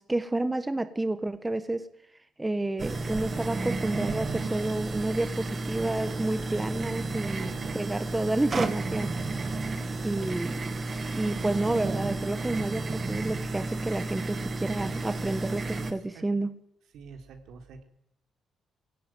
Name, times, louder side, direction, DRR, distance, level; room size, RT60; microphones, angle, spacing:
voice 1, 0.0-1.8 2.4-9.5 10.0-10.7 11.1-16.5, right 2 dB, 15° right, 11 dB, 1.4 m, -30 dB
sound 1, 2.8-15.9, right 3 dB, 40° right, 2.3 m, -32 dB
voice 2, 7.4-7.8 15.8-16.2 16.9-17.8, right 5 dB, 75° right, 5 dB, 3.7 m, -45 dB
22.0 x 17.0 x 9.2 m, 0.80 s
cardioid pair, 90°, 0 cm